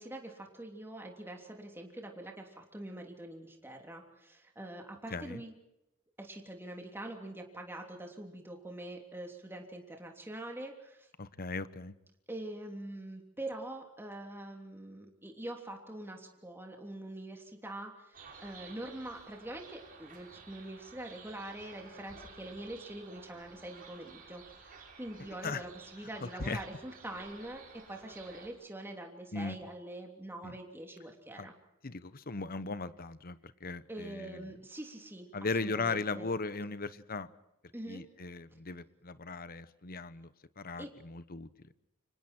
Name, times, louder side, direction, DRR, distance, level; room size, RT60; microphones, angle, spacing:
voice 1, 0.0-5.5 6.2-11.1 12.3-31.5 33.9-36.3 37.7-38.0 40.8-40.9, right 1 dB, 10° right, 2 dB, 3.2 m, -44 dB
voice 2, 5.1-5.4 11.2-11.9 25.4-25.7 26.2-26.6 29.3-29.6 30.4-30.6 31.4-31.5 31.8-34.5 35.3-37.3 37.9-41.5, left 3 dB, 45° left, 14 dB, 1.1 m, -38 dB
sound 1, 18.1-28.5, right 4 dB, 45° right, 6.4 m, -53 dB
29.5 x 25.5 x 4.6 m, 0.88 s
head